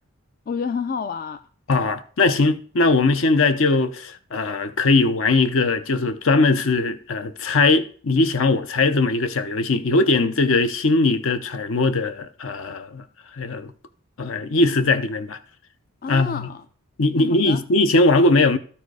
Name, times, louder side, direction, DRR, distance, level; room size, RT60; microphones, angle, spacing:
voice 1, 0.5-1.4 16.0-16.6 17.1-17.6, left 5 dB, 40° left, 0.3 m, -29 dB
voice 2, 1.7-13.0 13.4-13.7 14.2-15.4 16.1-16.5 17.0-18.6, left 3 dB, 60° left, 0.7 m, -20 dB
12.5 x 4.4 x 4.8 m
head